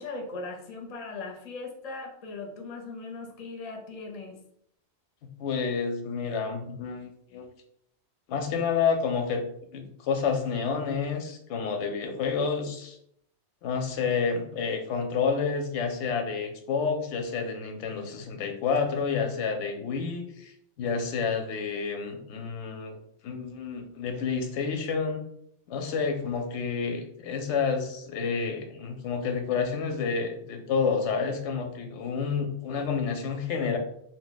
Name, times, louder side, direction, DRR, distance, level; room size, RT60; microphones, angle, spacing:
voice 1, 0.0-4.4, left 3 dB, 45° left, 1 dB, 0.5 m, -39 dB
voice 2, 5.4-7.5 8.3-9.4 9.7-13.0 13.6-23.0 23.2-25.2 25.7-33.8, left 5 dB, 90° left, 5 dB, 0.9 m, -29 dB
2.4 x 2.1 x 3.8 m, 0.71 s
omnidirectional pair, 1.1 m